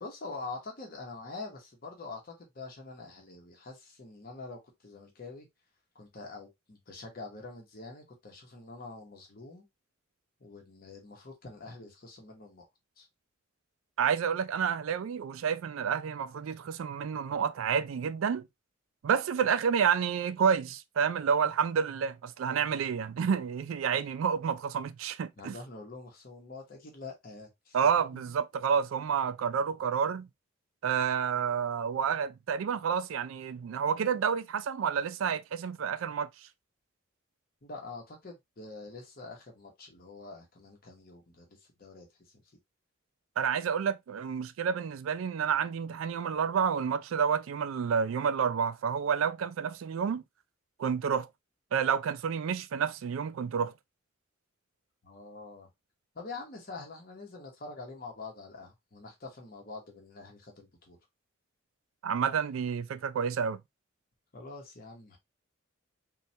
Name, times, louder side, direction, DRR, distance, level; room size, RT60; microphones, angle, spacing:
voice 1, 0.0-5.5 5.9-9.6 10.4-12.6 13.0-13.1 25.4-27.8 28.1-28.2 37.6-42.1 55.0-55.7 56.1-61.0 64.3-65.2, left 3 dB, 45° left, 0.8 m, -45 dB
voice 2, 14.0-18.5 19.0-25.6 27.7-30.3 30.8-36.3 43.4-50.2 50.8-51.3 51.7-53.7 62.0-63.6, right 7 dB, 75° right, 0.3 m, -29 dB
3.1 x 2.3 x 2.7 m
head